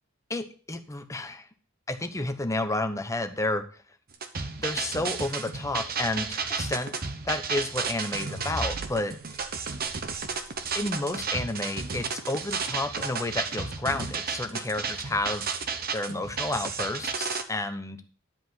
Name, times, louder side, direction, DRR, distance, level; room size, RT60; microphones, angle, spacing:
voice 1, 0.3-1.5 1.9-3.6 4.6-6.9 7.2-9.1 10.7-15.5 15.9-18.0, left 2 dB, 15° left, 8 dB, 1.0 m, -31 dB
sound 1, 4.1-17.4, right 5 dB, 45° right, 1.1 m, -33 dB
sound 2, 8.1-11.4, right 1 dB, 90° right, 1.6 m, -41 dB
10.5 x 5.1 x 7.9 m, 0.42 s
head